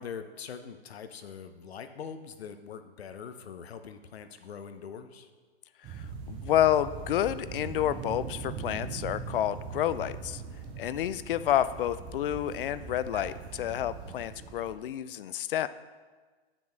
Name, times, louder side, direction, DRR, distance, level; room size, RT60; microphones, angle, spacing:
voice 1, 0.0-5.3, left 7 dB, 80° left, 9 dB, 0.9 m, -43 dB
voice 2, 5.8-10.4 10.8-15.7, left 11 dB, 60° left, 15 dB, 0.5 m, -29 dB
sound 1, 5.8-14.8, right 5 dB, 15° right, 0.4 m, -41 dB
8.5 x 6.0 x 3.9 m, 1.4 s
hypercardioid pair, 140°, 31 cm